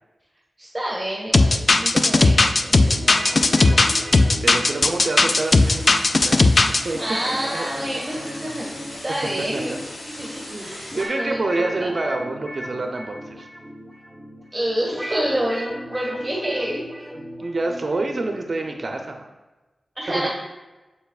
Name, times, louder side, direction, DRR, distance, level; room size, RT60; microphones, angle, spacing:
voice 1, 0.6-3.0 7.0-8.7 9.0-9.7 10.2-11.9 14.5-16.8 20.0-20.3, right 1 dB, 10° right, -5 dB, 1.7 m, -28 dB
sound 1, 1.3-6.8, left 2 dB, 45° left, 0.3 m, -16 dB
sound 2, 2.9-18.9, equal, 10° left, 1.4 m, -36 dB
voice 2, 3.3-3.8 4.4-5.9 6.2-7.0 7.3-7.7 8.5-8.6 9.5-9.8 10.5-13.5 17.1-19.3 20.1-20.3, right 2 dB, 50° right, 3 dB, 0.6 m, -28 dB
sound 3, 5.4-11.1, left 1 dB, 80° left, 1.4 m, -38 dB
7.2 x 6.9 x 2.4 m, 1.1 s
wide cardioid pair, 85°, 0 cm